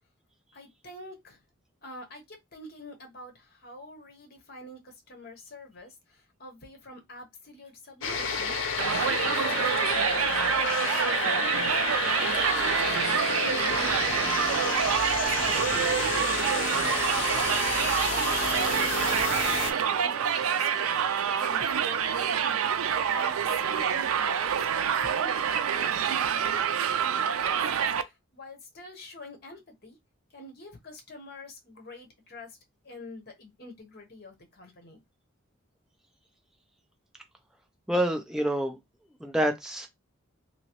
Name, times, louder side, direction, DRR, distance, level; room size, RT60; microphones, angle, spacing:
voice 1, 0.5-1.4 1.8-8.5 9.0-22.6 23.1-25.3 25.6-30.0 30.3-32.6 32.8-35.0, left 1 dB, 45° left, 1.0 m, -46 dB
sound 1, 8.0-19.7, left 4 dB, 65° left, 0.6 m, -30 dB
Crowd, 8.8-28.0, right 8 dB, 85° right, 0.4 m, -27 dB
voice 2, 37.9-38.8 39.2-39.9, equal, 5° right, 0.4 m, -27 dB
3.0 x 2.9 x 2.9 m
head